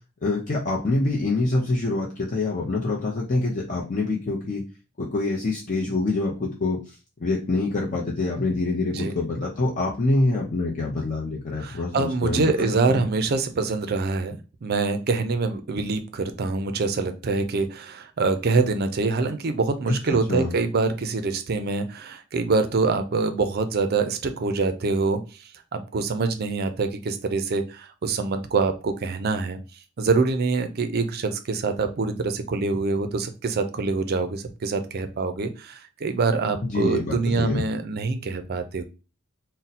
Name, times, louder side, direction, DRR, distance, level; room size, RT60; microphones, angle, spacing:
voice 1, 0.2-4.6 5.0-6.8 7.2-12.5 12.9-13.0 19.9-20.5 36.6-37.7, left 2 dB, 35° left, -2 dB, 0.5 m, -25 dB
voice 2, 11.6-25.2 25.7-29.6 30.0-38.8, right 4 dB, 45° right, 8 dB, 0.4 m, -25 dB
2.6 x 2.1 x 4.0 m, 0.31 s
head